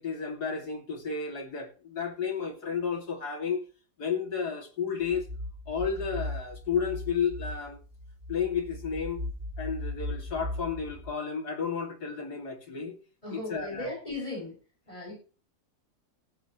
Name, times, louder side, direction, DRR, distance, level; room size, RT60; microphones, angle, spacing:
voice 1, 0.0-3.6 4.0-5.3 5.7-7.8 8.3-9.2 9.6-13.0 13.3-13.9, left 6 dB, 75° left, 3.1 m, -32 dB
sound 1, 5.0-11.1, left 1 dB, 50° right, 4.6 m, -38 dB
voice 2, 13.2-14.6 14.9-15.1, left 2 dB, 20° left, 7.0 m, -37 dB
17.5 x 8.9 x 3.1 m
omnidirectional pair, 1.7 m